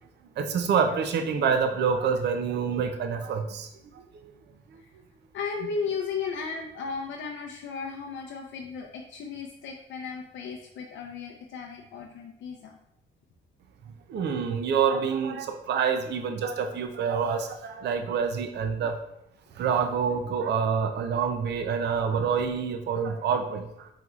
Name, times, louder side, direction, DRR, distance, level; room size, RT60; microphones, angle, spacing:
voice 1, 0.4-3.7 3.9-4.3 14.1-19.0 19.6-23.9, right 6 dB, 60° right, 6 dB, 0.5 m, -27 dB
voice 2, 5.3-12.7, left 5 dB, 75° left, 1 dB, 0.5 m, -35 dB
4.4 x 4.0 x 2.4 m, 0.81 s
cardioid pair, 90°, 20 cm